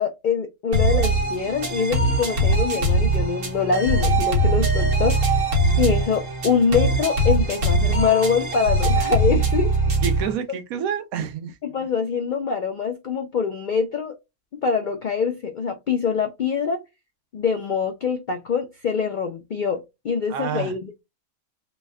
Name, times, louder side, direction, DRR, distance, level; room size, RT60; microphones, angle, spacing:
voice 1, 0.0-5.3 5.8-9.7 11.6-14.1 14.6-16.8 17.3-21.0, left 6 dB, 90° left, 0.4 m, -24 dB
sound 1, 0.7-10.3, right 1 dB, 60° right, 1.4 m, -21 dB
voice 2, 10.0-11.6 20.3-20.7, right 8 dB, 85° right, 1.1 m, -28 dB
3.2 x 2.1 x 3.3 m
omnidirectional pair, 1.5 m